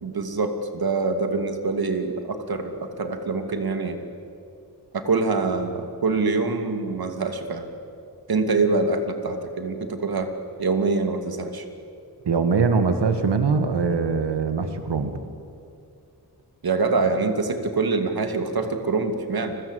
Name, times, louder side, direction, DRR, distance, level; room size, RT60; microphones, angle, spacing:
voice 1, 0.0-4.0 4.9-7.7 8.3-10.3 10.6-11.6 16.6-19.6, right 3 dB, 65° right, 6 dB, 2.7 m, -25 dB
voice 2, 12.3-15.1, right 5 dB, 90° right, 7 dB, 1.9 m, -22 dB
30.0 x 21.5 x 8.3 m, 2.5 s
wide cardioid pair, 115°, 40 cm